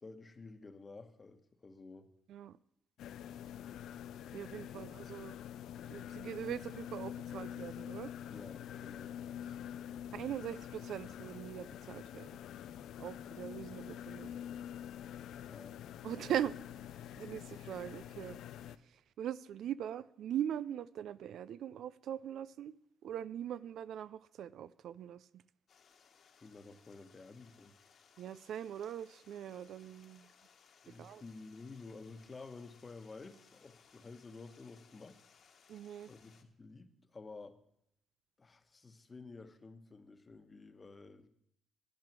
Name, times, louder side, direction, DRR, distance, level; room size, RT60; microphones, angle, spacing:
voice 1, 0.0-2.1 8.3-9.1 15.5-15.8 26.4-27.7 30.8-35.2 36.1-37.6 38.4-41.3, left 3 dB, 30° left, 8 dB, 1.1 m, -52 dB
sound 1, 3.0-18.8, left 10 dB, 80° left, 0.4 m, -46 dB
voice 2, 4.3-5.4 5.9-8.1 10.1-12.3 13.0-14.3 16.0-16.6 17.1-18.4 19.2-22.7 23.0-25.3 28.2-30.3 30.9-31.2 35.7-36.1, right 10 dB, 75° right, 17 dB, 0.4 m, -41 dB
Stream, 25.7-36.4, left 6 dB, 60° left, 1.4 m, -65 dB
11.0 x 9.5 x 6.0 m, 0.73 s
cardioid pair, 90°, 0 cm